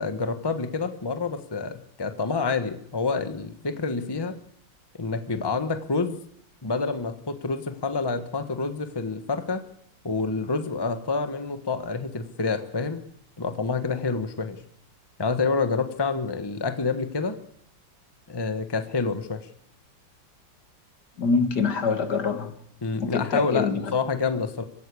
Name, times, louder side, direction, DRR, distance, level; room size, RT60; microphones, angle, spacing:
voice 1, 0.0-4.4 4.9-6.2 6.6-9.6 10.0-13.0 13.4-14.6 15.2-17.4 18.3-19.5 22.8-24.6, left 4 dB, 15° left, 1.2 m, -28 dB
voice 2, 21.2-22.5 23.0-23.9, left 5 dB, 60° left, 2.3 m, -25 dB
24.0 x 16.0 x 8.5 m
omnidirectional pair, 2.1 m